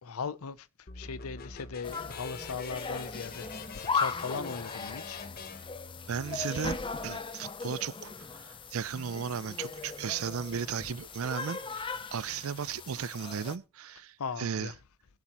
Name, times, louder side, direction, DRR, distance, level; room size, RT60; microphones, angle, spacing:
voice 1, 0.0-5.3 14.2-14.8, left 5 dB, 80° left, 0.6 m, -38 dB
sound 1, 0.9-6.5, left 4 dB, 45° left, 0.9 m, -45 dB
sound 2, 1.8-13.6, left 4 dB, 25° left, 0.6 m, -38 dB
voice 2, 6.1-6.8 7.0-14.7, right 7 dB, 70° right, 0.5 m, -35 dB
21.5 x 7.4 x 3.0 m
head